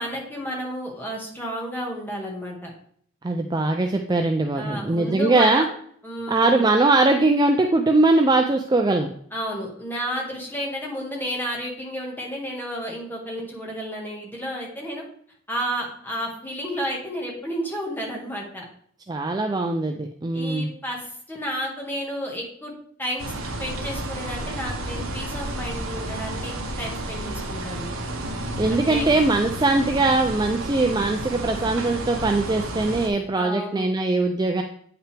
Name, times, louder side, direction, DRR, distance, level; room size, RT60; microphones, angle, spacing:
voice 1, 0.0-2.7 4.5-5.6 6.0-6.7 9.3-15.0 15.5-18.6 20.3-22.7 23.0-23.3 23.6-27.9 28.7-29.1 33.3-33.9, equal, 10° left, -2 dB, 1.6 m, -31 dB
voice 2, 3.2-5.7 6.3-9.1 19.1-20.7 28.6-34.6, right 2 dB, 20° right, 4 dB, 0.4 m, -21 dB
sound 1, 23.2-33.1, right 1 dB, 70° right, 1.2 m, -31 dB
8.7 x 5.8 x 3.4 m, 0.63 s
head